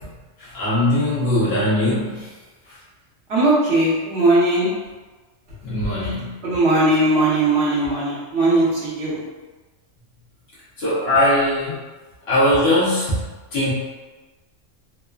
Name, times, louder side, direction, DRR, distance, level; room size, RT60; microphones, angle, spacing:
voice 1, 0.4-2.3 5.6-6.4 10.8-11.7 12.3-13.2 13.5-13.7, left 1 dB, 60° left, -8 dB, 0.9 m, -20 dB
voice 2, 3.3-4.7 5.8-5.9 6.4-9.2, right 2 dB, 60° right, -8 dB, 1.1 m, -19 dB
3.1 x 2.0 x 2.3 m, 1.2 s
omnidirectional pair, 1.3 m